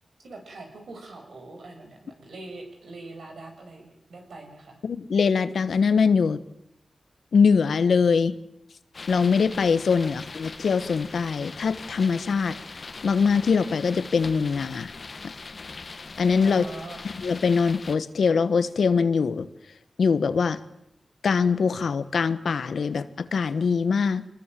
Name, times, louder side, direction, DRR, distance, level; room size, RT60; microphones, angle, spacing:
voice 1, 0.2-4.8 10.0-10.2 16.4-17.0, right 2 dB, 85° right, 3 dB, 6.0 m, -43 dB
voice 2, 4.8-6.4 7.3-8.4 9.1-12.6 13.0-14.9 16.2-16.6 17.2-19.5 20.0-20.6 21.2-24.3, left 5 dB, 80° left, 13 dB, 1.2 m, -22 dB
sound 1, 8.9-18.0, left 4 dB, 50° left, 1.3 m, -41 dB
25.0 x 20.5 x 7.6 m, 0.82 s
wide cardioid pair, 75°, 0 cm